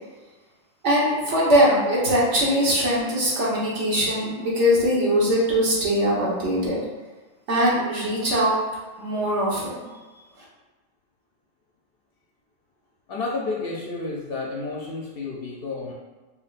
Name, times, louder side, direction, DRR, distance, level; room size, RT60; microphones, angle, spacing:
voice 1, 0.8-6.8 7.5-8.6 9.0-9.9, equal, 65° right, -6 dB, 1.4 m, -21 dB
voice 2, 13.1-15.9, left 3 dB, 60° left, -2 dB, 0.7 m, -31 dB
4.7 x 2.9 x 2.4 m, 1.3 s
omnidirectional pair, 1.4 m